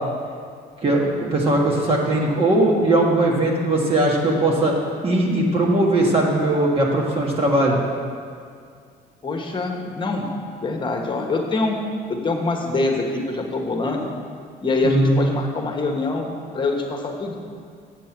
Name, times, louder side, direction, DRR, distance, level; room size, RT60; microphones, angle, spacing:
voice 1, 0.8-4.7 5.0-7.8 14.8-15.2, right 1 dB, 35° right, -2 dB, 1.6 m, -19 dB
voice 2, 9.2-10.3 10.6-11.8 12.1-14.1 14.6-17.4, left 3 dB, 30° left, 2 dB, 1.3 m, -24 dB
7.8 x 7.3 x 6.0 m, 2.2 s
cardioid pair, 110°, 17 cm